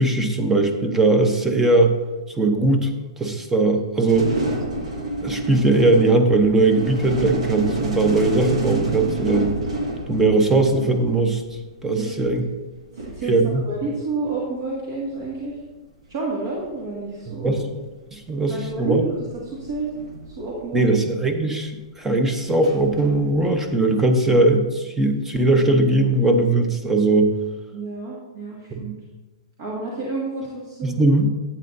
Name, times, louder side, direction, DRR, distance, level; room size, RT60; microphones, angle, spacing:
voice 1, 0.0-1.9 2.4-2.9 3.2-4.3 5.2-9.6 10.1-11.4 11.8-12.4 13.3-13.6 17.3-17.6 18.1-19.1 20.7-21.7 22.0-27.3 28.7-28.8 30.8-31.3, right 2 dB, 10° right, 5 dB, 0.9 m, -19 dB
sound 1, 4.1-11.5 12.7-12.8 13.0-14.3 15.4-15.7 16.8-16.9 17.5-17.7 18.6-21.0 22.5-23.7, right 2 dB, 90° right, 1.9 m, -29 dB
voice 2, 12.9-15.5 16.1-17.7 18.5-19.1 19.5-19.9 20.4-20.9 27.7-28.9 29.6-31.1, right 3 dB, 45° right, -4 dB, 2.1 m, -30 dB
11.5 x 8.7 x 2.7 m, 1.2 s
hypercardioid pair, 150°, 3 cm